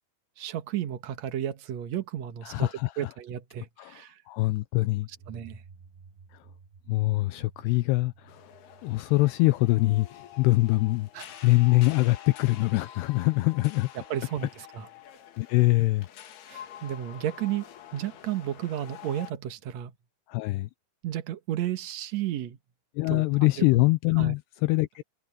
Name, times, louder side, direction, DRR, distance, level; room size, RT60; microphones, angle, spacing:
voice 1, 0.4-2.7 3.0-4.2 5.3-5.6 11.1-11.5 13.9-14.9 16.5-17.6 17.9-19.9 21.0-22.6 23.1-23.2 23.6-23.8 24.2-24.4, right 11 dB, 90° right, 1.5 m, -33 dB
voice 2, 2.4-3.1 3.8-4.0 4.3-5.1 6.9-8.4 8.8-11.1 11.4-13.9 15.4-16.1 20.3-20.7 23.0-25.0, left 20 dB, 85° left, 2.5 m, -24 dB
sound 1, 5.1-11.6, right 5 dB, 70° right, 5.1 m, -55 dB
sound 2, 8.3-19.3, left 11 dB, 65° left, 3.7 m, -47 dB
omnidirectional pair, 5.1 m